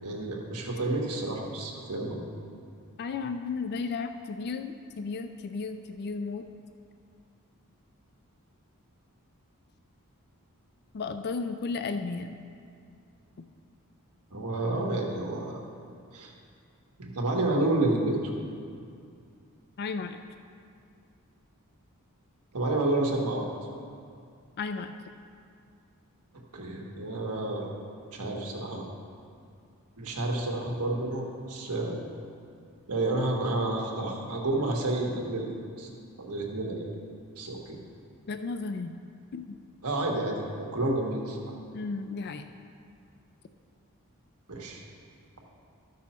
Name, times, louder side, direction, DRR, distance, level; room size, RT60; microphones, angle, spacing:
voice 1, 0.0-2.2 14.3-15.6 16.1-16.3 17.0-18.3 22.5-23.5 26.5-27.7 28.1-28.9 30.0-32.0 32.9-35.5 35.8-35.9 36.2-36.9 37.4-37.8 39.8-41.4 44.5-44.8, right 2 dB, 85° right, -1 dB, 1.5 m, -30 dB
voice 2, 3.0-6.5 10.9-12.3 19.8-20.2 24.6-24.9 38.3-38.9 39.3-39.5 41.7-42.4, left 4 dB, 45° left, 8 dB, 0.4 m, -34 dB
13.0 x 6.2 x 4.3 m, 2.4 s
head